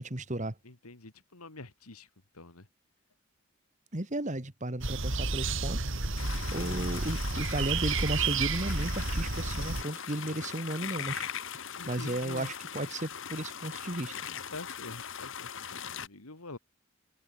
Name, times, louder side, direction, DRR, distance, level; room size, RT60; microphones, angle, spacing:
voice 1, 0.0-0.5 3.9-5.8 6.5-11.3 11.9-14.1, right 1 dB, 35° right, 1.9 m, -34 dB
voice 2, 0.6-2.1 2.3-2.7 6.0-7.0 11.8-12.5 14.5-16.6, left 2 dB, 85° left, 2.6 m, -47 dB
sound 1, 4.8-9.8, right 3 dB, 60° right, 2.8 m, -31 dB
sound 2, 6.2-16.1, left 8 dB, 60° left, 2.0 m, -40 dB
head